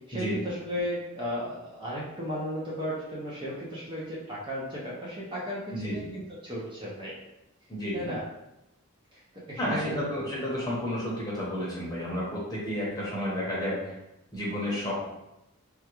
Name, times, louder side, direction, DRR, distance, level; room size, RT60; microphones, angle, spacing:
voice 1, 0.1-7.1 7.9-8.2 9.1-9.2 9.5-10.1, equal, 20° right, -6 dB, 0.6 m, -35 dB
voice 2, 5.7-6.1 7.7-8.1 9.6-13.9 14.3-15.0, left 1 dB, 15° left, -6 dB, 0.8 m, -31 dB
3.5 x 2.2 x 2.9 m, 0.91 s
head